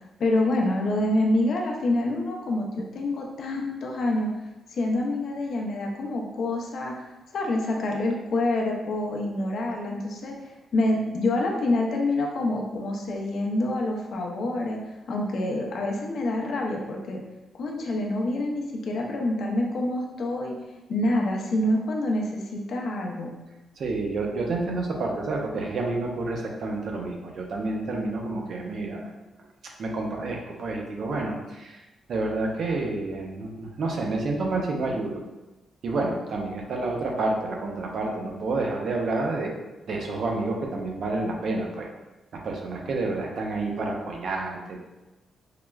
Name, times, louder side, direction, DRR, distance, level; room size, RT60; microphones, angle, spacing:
voice 1, 0.2-4.3 4.7-7.1 7.3-10.3 10.7-14.8 15.1-17.2 17.5-20.6 20.9-23.3, left 1 dB, 65° left, 0 dB, 0.5 m, -26 dB
voice 2, 23.8-29.0 29.8-31.8 32.1-35.2 35.8-39.5 39.9-41.9 42.3-44.8, right 2 dB, 60° right, 0 dB, 0.6 m, -29 dB
4.7 x 2.0 x 2.3 m, 1.0 s
cardioid pair, 115°, 0 cm